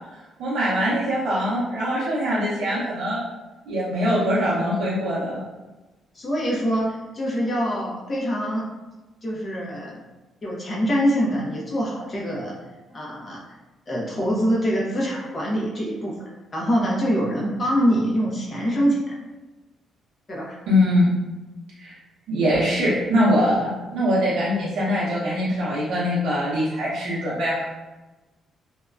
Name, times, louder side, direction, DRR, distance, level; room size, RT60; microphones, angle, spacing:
voice 1, 0.4-3.2 3.7-5.4 20.7-21.1 21.8-21.9 22.3-27.7, equal, 85° right, -9 dB, 0.7 m, -22 dB
voice 2, 6.1-8.7 9.2-10.0 10.4-12.5 12.9-13.4 13.9-16.1 16.5-19.2 20.3-20.6, equal, 35° left, -4 dB, 0.9 m, -24 dB
2.8 x 2.2 x 2.4 m, 1.1 s
cardioid pair, 90°, 0 cm